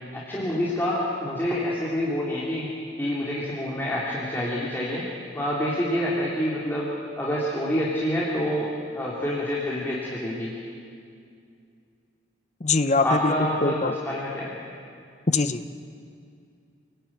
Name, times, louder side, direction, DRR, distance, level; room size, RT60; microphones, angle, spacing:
voice 1, 0.1-2.7 3.0-5.1 5.3-6.9 7.2-10.5 13.0-14.5, equal, 10° left, -6 dB, 3.1 m, -27 dB
voice 2, 12.6-13.3 13.6-13.9 15.3-15.6, left 3 dB, 35° left, 10 dB, 0.9 m, -22 dB
27.5 x 19.0 x 8.8 m, 2.4 s
head